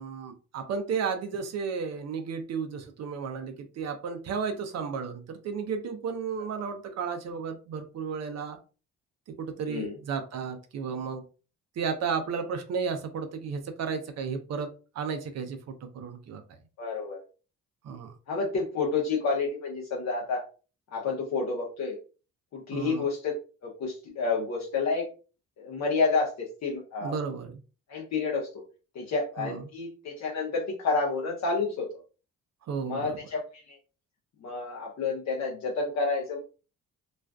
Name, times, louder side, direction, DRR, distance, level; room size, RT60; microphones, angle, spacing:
voice 1, 0.0-8.6 9.4-11.2 11.8-14.7 14.9-16.4 17.8-18.1 22.7-23.1 27.0-27.5 29.4-29.6 32.7-33.2, right 6 dB, 60° right, 0.5 m, -33 dB
voice 2, 9.7-10.0 16.8-17.2 18.3-20.4 20.9-22.0 22.5-23.3 23.6-25.1 25.6-27.2 27.9-28.5 28.9-31.9 32.9-33.8 34.4-36.4, left 4 dB, 60° left, 0.7 m, -29 dB
2.4 x 2.3 x 2.2 m
cardioid pair, 90°, 30 cm